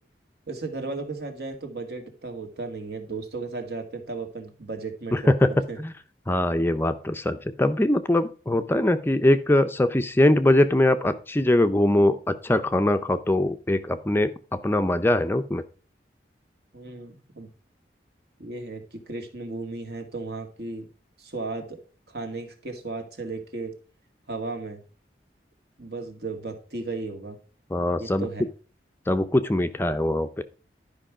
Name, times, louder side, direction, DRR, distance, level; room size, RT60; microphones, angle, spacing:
voice 1, 0.5-5.2 5.4-5.8 16.7-17.5 18.4-20.9 21.2-21.8 22.1-23.7 24.3-24.8 25.8-27.4 28.0-28.4, right 3 dB, 65° right, 4 dB, 2.1 m, -35 dB
voice 2, 5.1-5.5 5.8-5.9 6.3-15.6 27.7-28.3 29.1-30.4, left 1 dB, 15° left, 9 dB, 0.5 m, -22 dB
11.5 x 5.3 x 4.9 m, 0.37 s
head